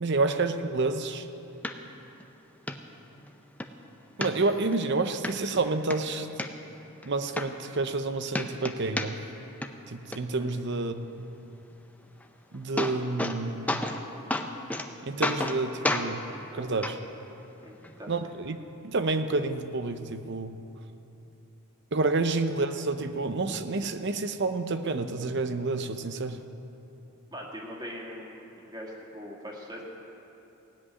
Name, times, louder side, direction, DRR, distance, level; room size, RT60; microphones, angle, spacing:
voice 1, 0.0-1.3 4.2-6.3 7.0-9.2 9.9-11.3 12.5-13.8 15.0-16.2 16.5-16.9 18.1-18.6 18.8-20.6 21.9-26.4, right 3 dB, 50° right, 9 dB, 0.7 m, -29 dB
sound 1, 1.6-1.7 2.2-2.3 2.7-2.8 3.2-3.7 4.2-4.8 5.2-5.3 5.7-6.5 7.0-7.1 7.4-8.0 8.3-9.4 9.6-10.2 12.2-12.3 12.5-13.4 13.7-14.0 14.3-14.9 15.2-15.6 15.8-16.1 16.8-16.9 17.8-17.9, left 1 dB, 5° left, 0.6 m, -30 dB
voice 2, 17.6-18.1 27.3-29.8, equal, 20° right, -2 dB, 2.1 m, -41 dB
16.5 x 7.9 x 9.7 m, 2.9 s
head